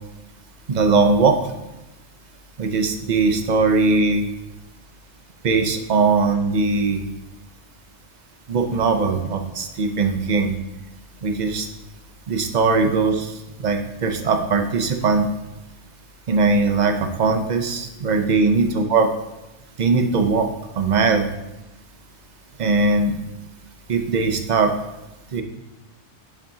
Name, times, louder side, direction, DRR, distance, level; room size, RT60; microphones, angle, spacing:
voice 1, 0.7-1.4 2.6-4.3 5.4-7.0 8.5-10.5 11.2-11.7 12.3-13.3 13.6-15.3 16.3-19.1 19.8-20.5 20.8-21.3 22.6-23.2 23.9-24.7 25.3-25.4, right 4 dB, 45° right, 5 dB, 0.7 m, -20 dB
7.6 x 7.3 x 2.8 m, 0.99 s
omnidirectional pair, 1.2 m